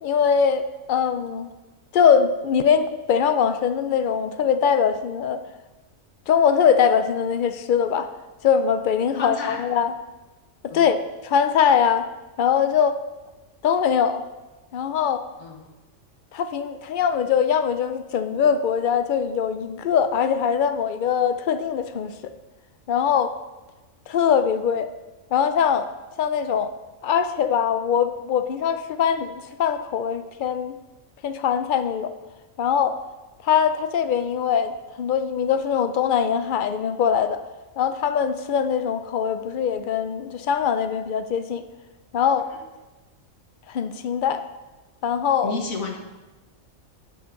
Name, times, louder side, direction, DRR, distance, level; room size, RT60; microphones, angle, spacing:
voice 1, 0.0-0.6 0.9-1.5 1.9-5.4 6.3-8.1 8.4-9.9 10.6-11.0 11.2-12.0 12.4-13.0 13.6-14.2 14.7-15.3 16.3-22.3 22.9-23.3 24.1-24.9 25.3-25.9 26.2-26.7 27.0-30.7 31.2-32.1 32.6-33.0 33.4-34.7 35.0-37.4 37.8-41.6 42.1-42.5 43.7-44.4 45.0-45.5, left 7 dB, 65° left, 10 dB, 0.5 m, -22 dB
voice 2, 9.2-9.6 10.7-10.9 15.4-15.7 42.5-42.6 45.4-46.0, left 4 dB, 85° left, 2 dB, 1.6 m, -31 dB
11.5 x 6.6 x 3.8 m, 1.2 s
omnidirectional pair, 1.4 m